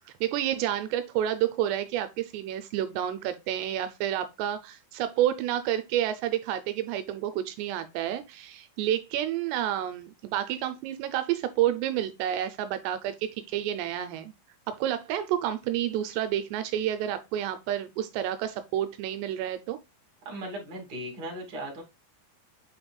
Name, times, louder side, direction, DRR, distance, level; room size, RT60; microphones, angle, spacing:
voice 1, 0.2-14.3 14.7-19.8, right 11 dB, 85° right, 2.7 m, -29 dB
voice 2, 20.2-21.8, right 1 dB, 30° right, 2.1 m, -37 dB
8.4 x 5.2 x 2.3 m
omnidirectional pair, 5.0 m